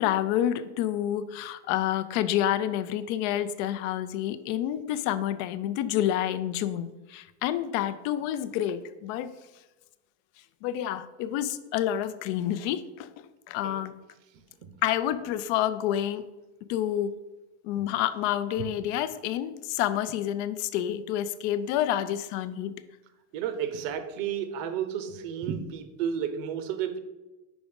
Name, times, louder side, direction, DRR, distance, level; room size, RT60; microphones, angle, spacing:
voice 1, 0.0-9.3 10.6-13.1 13.5-14.0 14.8-16.2 16.7-17.1 17.6-22.7, left 11 dB, 60° left, 14 dB, 0.5 m, -28 dB
voice 2, 23.3-27.0, right 8 dB, 75° right, 10 dB, 0.9 m, -32 dB
5.1 x 4.8 x 5.2 m, 1.1 s
supercardioid pair, 150°, 39 cm